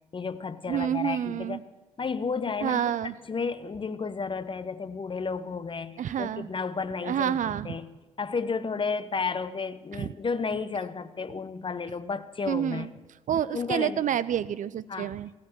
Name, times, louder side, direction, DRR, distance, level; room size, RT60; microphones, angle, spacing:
voice 1, 0.1-1.6 2.0-2.8 3.3-7.9 8.2-12.9 13.5-14.0 14.9-15.1, left 5 dB, 30° left, 14 dB, 0.8 m, -32 dB
voice 2, 0.7-1.6 2.6-3.1 6.0-6.5 7.0-7.8 9.9-10.1 12.5-12.9 13.3-15.3, right 10 dB, 45° right, 17 dB, 0.5 m, -28 dB
15.5 x 8.6 x 8.0 m, 1.2 s
hypercardioid pair, 45°, 17 cm